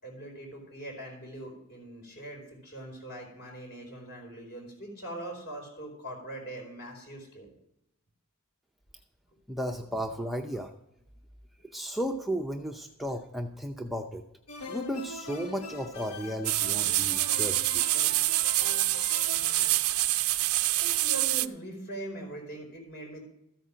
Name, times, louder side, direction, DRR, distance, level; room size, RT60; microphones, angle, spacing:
voice 1, 0.0-7.5 18.0-18.1 20.3-23.3, right 1 dB, 50° left, 1 dB, 4.6 m, -42 dB
voice 2, 9.5-10.7 11.7-14.2 14.7-18.1, equal, ahead, 2 dB, 0.5 m, -34 dB
sound 1, 14.5-19.8, left 2 dB, 85° left, 1.4 m, -42 dB
sound 2, 16.4-21.5, right 17 dB, 80° right, 0.5 m, -26 dB
14.0 x 8.5 x 5.1 m, 0.83 s
head